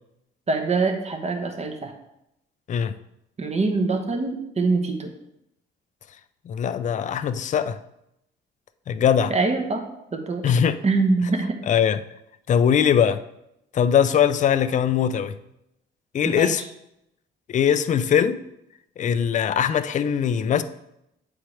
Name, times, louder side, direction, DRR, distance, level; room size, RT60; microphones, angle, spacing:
voice 1, 0.5-1.9 3.4-5.1 9.3-9.8 10.1-10.4 10.8-11.6 16.2-16.5, right 3 dB, 35° right, 1.0 m, -24 dB
voice 2, 6.5-7.8 8.9-9.3 10.4-10.8 11.7-12.0 12.5-13.2 13.7-15.3 16.1-16.6 17.5-18.4 19.0-20.6, left 8 dB, 40° left, 0.4 m, -21 dB
7.3 x 4.5 x 3.3 m
cardioid pair, 90°, 20 cm